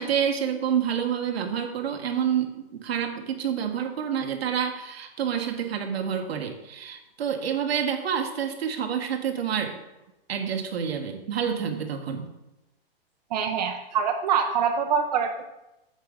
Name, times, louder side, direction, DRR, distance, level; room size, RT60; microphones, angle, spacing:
voice 1, 0.0-9.8 10.3-12.3, right 8 dB, 80° right, 5 dB, 1.4 m, -28 dB
voice 2, 13.3-15.5, right 7 dB, 40° right, 5 dB, 0.7 m, -25 dB
9.0 x 6.7 x 3.8 m, 0.94 s
hypercardioid pair, 150°, 31 cm